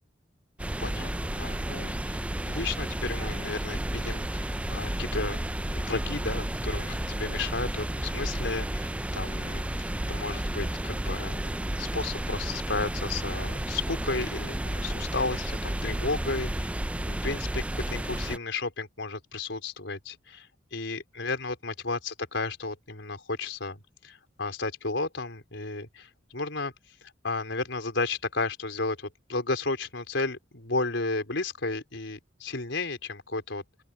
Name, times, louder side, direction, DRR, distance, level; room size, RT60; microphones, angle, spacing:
sound 1, 0.6-18.4, right 1 dB, 5° right, 0.4 m, -32 dB
voice 1, 0.8-5.4 5.7-11.4 11.8-16.8 17.1-26.7 27.2-33.8, left 3 dB, 80° left, 4.2 m, -33 dB
open air
head